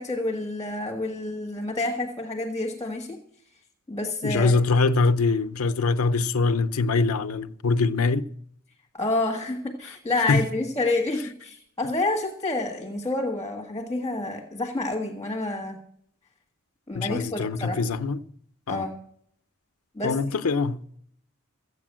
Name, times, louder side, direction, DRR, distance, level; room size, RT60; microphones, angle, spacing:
voice 1, 0.0-3.2 3.9-4.5 8.9-15.8 16.9-17.8 18.7-19.0 19.9-20.2, left 2 dB, 15° left, 1.7 m, -28 dB
voice 2, 4.2-8.3 10.3-10.4 16.9-18.2 18.7-18.9 20.0-20.8, left 3 dB, 90° left, 0.7 m, -23 dB
14.5 x 8.4 x 7.5 m
head